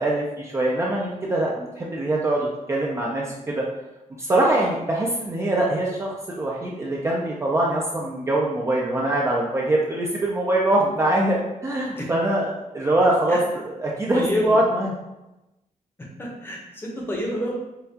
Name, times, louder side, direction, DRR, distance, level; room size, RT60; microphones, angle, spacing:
voice 1, 0.0-3.6 4.2-13.4 13.7-14.9, right 1 dB, 20° right, -3 dB, 0.4 m, -23 dB
voice 2, 14.1-14.6 16.2-17.5, left 1 dB, 15° left, -2 dB, 0.7 m, -28 dB
5.4 x 2.3 x 2.7 m, 0.97 s
wide cardioid pair, 180°, 14 cm